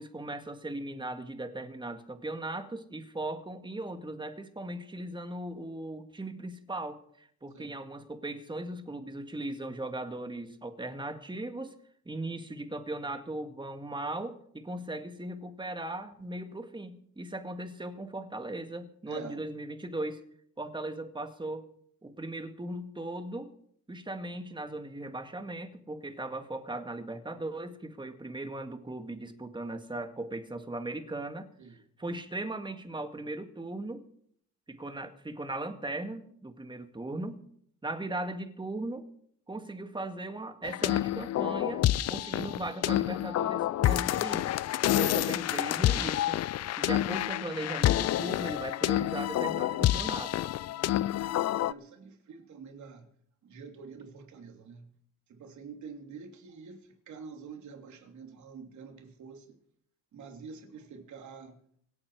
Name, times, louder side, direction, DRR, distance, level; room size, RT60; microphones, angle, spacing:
voice 1, 0.0-11.7 12.1-20.2 20.6-21.7 22.0-23.5 23.9-34.0 34.7-37.4 37.8-39.1 39.5-44.5 44.8-46.4 46.8-50.5, right 2 dB, 15° right, 1.9 m, -38 dB
voice 2, 19.1-19.4 31.6-31.8 51.2-53.1 53.4-54.9 55.3-59.5 60.1-61.6, right 5 dB, 70° right, 3.1 m, -47 dB
sound 1, 40.6-51.7, left 13 dB, 60° left, 0.5 m, -28 dB
25.5 x 8.8 x 4.8 m
cardioid pair, 90°, 30 cm